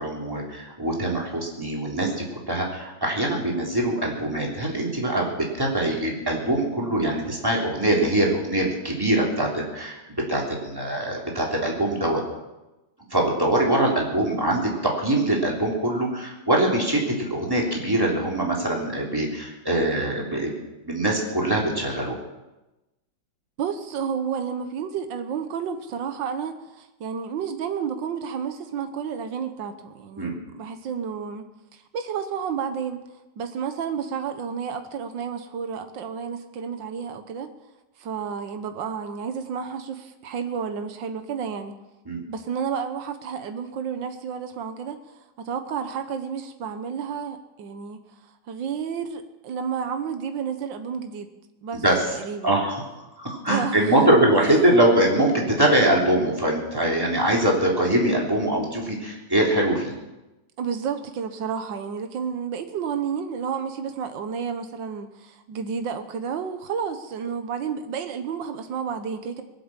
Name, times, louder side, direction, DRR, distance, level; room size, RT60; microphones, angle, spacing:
voice 1, 0.0-10.0 10.3-12.2 13.1-20.5 20.8-22.2 30.2-30.4 42.1-42.2 51.8-52.1 52.4-52.8 53.2-60.0, right 1 dB, 10° right, -2 dB, 3.4 m, -23 dB
voice 2, 23.6-33.0 33.4-37.5 38.0-41.8 42.3-48.0 48.5-51.3 51.6-51.8 52.1-52.6 53.5-53.9 54.4-54.5 60.6-69.4, right 7 dB, 80° right, 8 dB, 1.8 m, -31 dB
22.5 x 7.8 x 7.3 m, 1.0 s
omnidirectional pair, 2.0 m